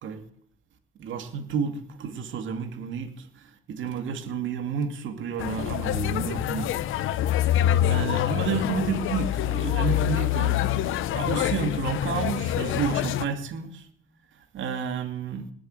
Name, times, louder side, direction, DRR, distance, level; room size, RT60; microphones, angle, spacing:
voice 1, 1.0-6.7 7.8-13.9 14.5-15.5, right 6 dB, 75° right, 7 dB, 2.5 m, -31 dB
sound 1, 5.4-13.2, left 12 dB, 85° left, 0.9 m, -26 dB
19.5 x 7.8 x 9.1 m, 0.66 s
cardioid pair, 90°, 20 cm